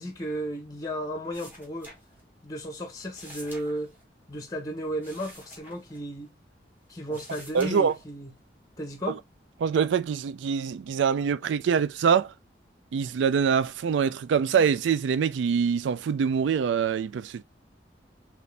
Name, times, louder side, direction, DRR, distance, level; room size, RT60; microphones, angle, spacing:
voice 1, 0.0-1.9 2.4-3.9 4.3-6.3 6.9-8.3 8.8-9.2, equal, 20° left, 0.9 m, -34 dB
sound 1, 1.3-2.5 2.8-6.6 6.9-8.4 8.8-9.4, equal, 10° right, 1.5 m, -49 dB
voice 2, 7.5-7.9 9.6-12.3 12.9-17.4, right 6 dB, 85° right, 0.3 m, -24 dB
4.2 x 3.0 x 3.2 m
head